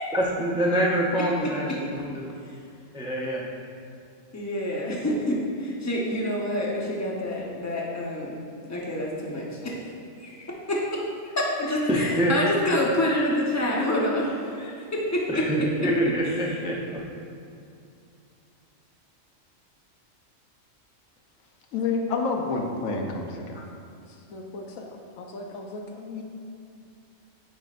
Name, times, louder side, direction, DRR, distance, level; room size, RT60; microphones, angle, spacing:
voice 1, 0.1-2.3 2.9-3.5 11.9-12.3 15.3-17.0, right 1 dB, 5° right, -3 dB, 0.4 m, -26 dB
voice 2, 4.3-8.4 8.7-9.5 10.2-10.3 10.7-11.0 11.4-15.4 15.8-15.9, left 1 dB, 15° left, -3 dB, 0.8 m, -27 dB
voice 3, 21.7-23.6 24.3-26.2, left 4 dB, 85° left, 2 dB, 1.1 m, -30 dB
8.9 x 5.3 x 2.5 m, 2.5 s
omnidirectional pair, 1.3 m